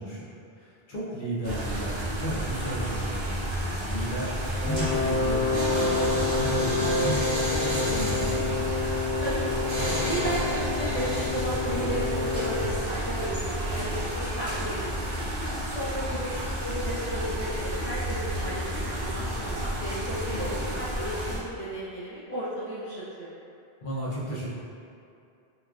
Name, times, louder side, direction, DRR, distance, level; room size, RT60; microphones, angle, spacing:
voice 1, 0.0-8.7 16.2-16.4 20.3-20.4 23.8-24.5, right 1 dB, 55° left, -8 dB, 0.9 m, -34 dB
sound 1, 1.4-21.4, equal, 75° right, 1.0 m, -31 dB
sound 2, 3.8-14.6, right 1 dB, 30° right, 0.7 m, -33 dB
Wind instrument woodwind instrument, 4.6-12.7, left 5 dB, 5° right, 1.0 m, -29 dB
voice 2, 9.2-9.6 10.0-14.9 15.7-16.3 16.6-23.3, right 1 dB, 20° left, -13 dB, 0.3 m, -34 dB
4.3 x 2.3 x 2.4 m, 2.6 s
omnidirectional pair, 1.0 m